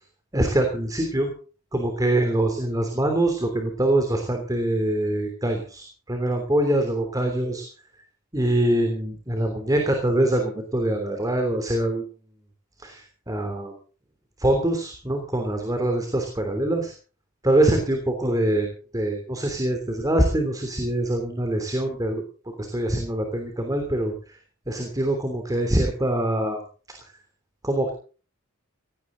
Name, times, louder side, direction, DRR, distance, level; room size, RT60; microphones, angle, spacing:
voice 1, 0.3-1.3 1.7-7.6 8.3-12.0 12.8-13.7 14.4-16.9 17.4-22.2 22.6-24.4 24.7-26.6 27.0-27.1 27.6-27.9, right 1 dB, 15° right, 4 dB, 3.2 m, -24 dB
18.5 x 16.5 x 4.0 m, 0.38 s
head